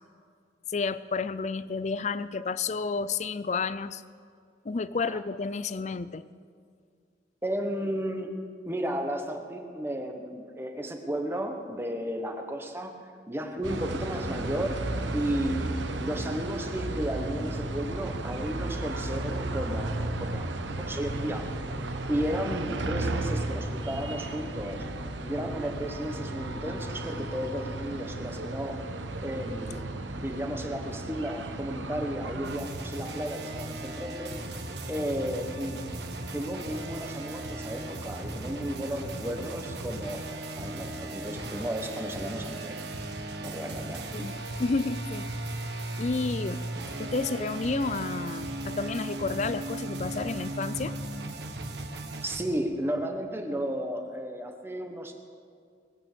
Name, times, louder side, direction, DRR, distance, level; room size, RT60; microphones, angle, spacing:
voice 1, 0.7-4.0 4.6-6.3 44.1-44.3 44.6-45.3 46.0-46.6 47.0-51.0, left 4 dB, 40° left, 15 dB, 0.4 m, -31 dB
voice 2, 7.4-8.3 8.6-12.9 13.3-21.5 22.1-24.8 25.2-28.9 29.2-29.9 30.2-34.3 34.9-35.9 36.3-40.2 40.6-42.8 43.4-44.3 52.2-55.1, equal, 15° right, 4 dB, 1.2 m, -33 dB
sound 1, 13.6-32.6, right 2 dB, 90° right, 1.0 m, -34 dB
Organ / Church bell, 14.0-28.1, left 2 dB, 40° right, 2.7 m, -47 dB
sound 2, 32.4-52.4, right 2 dB, 70° right, 1.4 m, -37 dB
20.5 x 9.0 x 6.9 m, 2.2 s
head